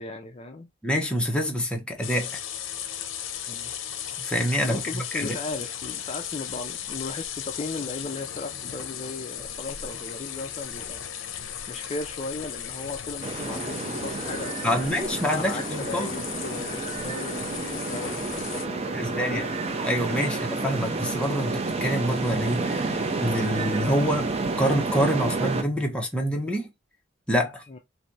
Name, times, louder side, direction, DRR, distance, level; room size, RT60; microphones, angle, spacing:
voice 1, 0.0-0.7 3.5-3.7 4.6-11.0 11.3-14.8 15.3-19.5 20.2-20.5 27.7-27.8, left 3 dB, 30° left, 0.4 m, -37 dB
voice 2, 0.8-2.4 4.2-5.4 14.6-16.1 18.9-19.5 19.8-26.7 27.3-27.6, equal, 5° left, 0.8 m, -26 dB
sound 1, 2.0-18.7, left 9 dB, 80° left, 0.6 m, -36 dB
sound 2, 13.2-25.6, right 3 dB, 30° right, 0.5 m, -30 dB
3.2 x 2.6 x 2.6 m
head